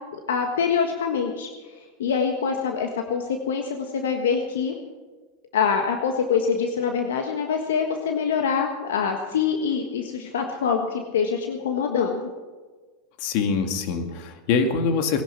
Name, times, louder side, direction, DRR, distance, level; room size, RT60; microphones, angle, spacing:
voice 1, 0.1-1.5 2.0-4.7 5.5-12.2, left 6 dB, 80° left, 4 dB, 1.5 m, -25 dB
voice 2, 13.2-15.2, left 5 dB, 60° left, 6 dB, 2.2 m, -24 dB
19.0 x 11.0 x 6.0 m, 1.3 s
hypercardioid pair, 100°, 0 cm